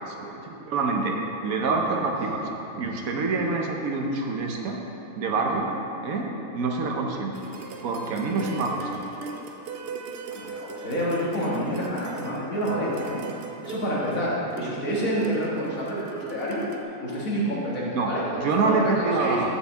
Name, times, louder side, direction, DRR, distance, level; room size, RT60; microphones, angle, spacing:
voice 1, 0.1-1.2 1.4-2.5 2.8-4.8 5.2-5.8 6.0-6.3 6.5-7.3 7.8-9.0 17.9-19.5, right 3 dB, 90° right, 1 dB, 1.3 m, -26 dB
sound 1, 7.3-16.8, right 5 dB, 55° right, 0.8 m, -39 dB
voice 2, 10.3-13.2 13.6-16.7 17.0-19.5, equal, 75° left, -6 dB, 2.2 m, -28 dB
6.4 x 5.7 x 7.0 m, 3.0 s
omnidirectional pair, 1.4 m